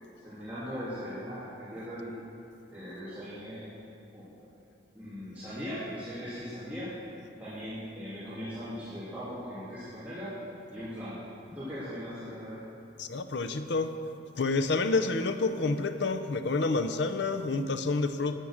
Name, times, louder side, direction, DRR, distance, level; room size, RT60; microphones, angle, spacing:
voice 1, 0.2-2.2 2.7-3.7 4.1-4.3 4.9-7.0 7.4-10.4 10.7-11.2 11.5-12.6, equal, 10° right, -14 dB, 2.9 m, -39 dB
voice 2, 13.0-14.0 14.4-18.4, left 3 dB, 75° left, 9 dB, 0.6 m, -28 dB
13.0 x 8.8 x 6.4 m, 2.6 s
head